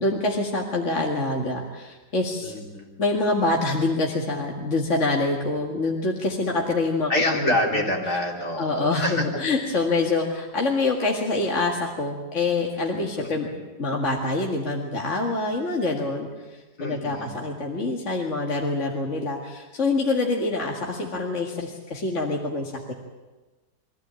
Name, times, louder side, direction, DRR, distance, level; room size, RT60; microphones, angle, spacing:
voice 1, 0.0-2.5 3.0-7.1 7.4-7.8 8.6-13.5 13.8-22.9, left 2 dB, 45° left, -1 dB, 2.3 m, -26 dB
voice 2, 2.4-2.9 7.1-9.2 13.2-13.3 16.8-17.3, left 1 dB, 65° left, -1 dB, 4.0 m, -26 dB
24.0 x 15.5 x 9.0 m, 1.2 s
omnidirectional pair, 1.8 m